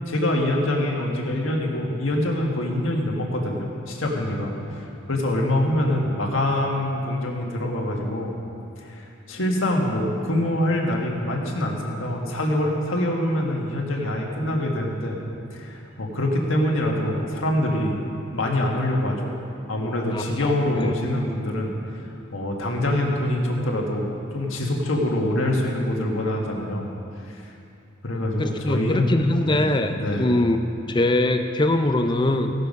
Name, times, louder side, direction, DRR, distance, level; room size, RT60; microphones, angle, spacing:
voice 1, 0.0-8.3 8.8-15.2 15.5-18.0 18.3-19.3 19.7-21.7 22.3-26.9 27.3-27.4 28.0-29.1 29.5-30.4, left 1 dB, 70° left, -1 dB, 1.6 m, -25 dB
voice 2, 20.1-20.5 20.8-20.9 28.4-30.6 30.9-32.5, left 1 dB, 20° left, 7 dB, 0.5 m, -22 dB
17.0 x 6.8 x 5.4 m, 2.7 s
head